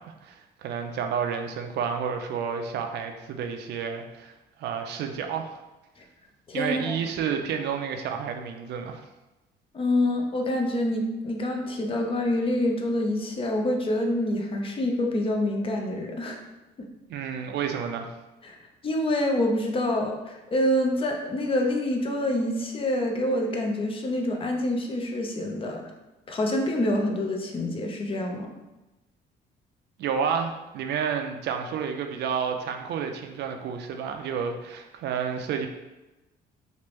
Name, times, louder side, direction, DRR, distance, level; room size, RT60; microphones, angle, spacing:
voice 1, 0.1-4.3 4.6-5.6 6.5-9.0 17.1-18.1 30.0-35.7, right 7 dB, 70° right, 5 dB, 0.4 m, -30 dB
voice 2, 6.5-6.9 9.7-16.4 18.4-18.5 18.8-25.8 26.3-28.5, left 1 dB, 30° left, 2 dB, 0.5 m, -26 dB
3.3 x 2.5 x 3.0 m, 1.0 s
cardioid pair, 125°, 18 cm